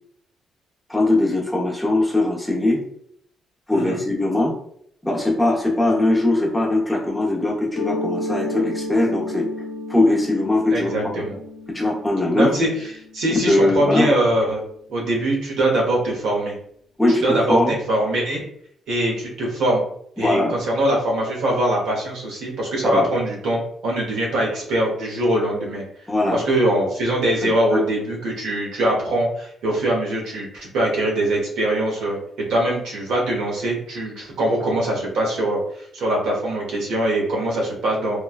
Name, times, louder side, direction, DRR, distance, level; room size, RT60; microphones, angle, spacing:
voice 1, 0.9-2.8 3.7-4.5 5.0-9.5 9.9-10.9 11.7-12.5 13.3-14.1 17.0-17.7 20.2-20.5 22.8-23.0 26.1-26.4 27.4-27.8, left 2 dB, 5° left, -3 dB, 0.8 m, -20 dB
Mallet percussion, 7.7-13.3, left 1 dB, 65° left, 0.5 m, -32 dB
voice 2, 10.7-11.3 12.3-14.6 14.9-16.6 17.2-18.4 18.9-19.8 20.2-25.8 26.3-32.2 32.5-38.2, right 1 dB, 80° right, -2 dB, 0.9 m, -22 dB
3.1 x 2.2 x 2.3 m, 0.67 s
cardioid pair, 90°, 0 cm